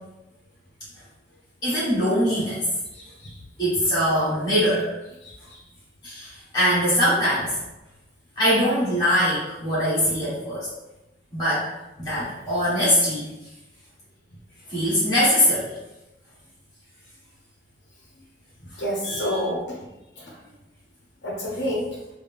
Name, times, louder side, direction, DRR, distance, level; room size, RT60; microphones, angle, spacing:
voice 1, 1.6-2.6 3.6-4.9 6.0-7.6 8.4-10.7 11.3-11.7 12.0-13.2 14.7-15.7 19.0-19.4, equal, 25° left, -11 dB, 1.4 m, -22 dB
voice 2, 3.0-3.3 5.2-5.3 18.8-19.6 20.2-20.3 21.2-22.0, equal, 80° left, -3 dB, 0.8 m, -28 dB
4.0 x 2.1 x 3.5 m, 0.98 s
head